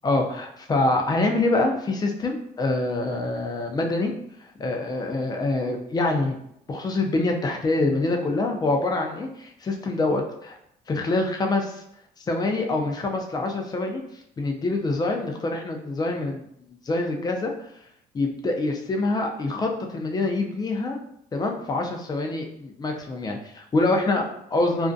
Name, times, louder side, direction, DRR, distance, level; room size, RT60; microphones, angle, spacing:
voice 1, 0.0-4.1 4.4-6.3 6.7-10.5 10.9-11.8 12.3-14.0 14.4-17.5 18.1-21.0 21.3-24.9, left 2 dB, 25° left, 2 dB, 0.4 m, -25 dB
2.4 x 2.1 x 2.5 m, 0.74 s
cardioid pair, 110°, 17 cm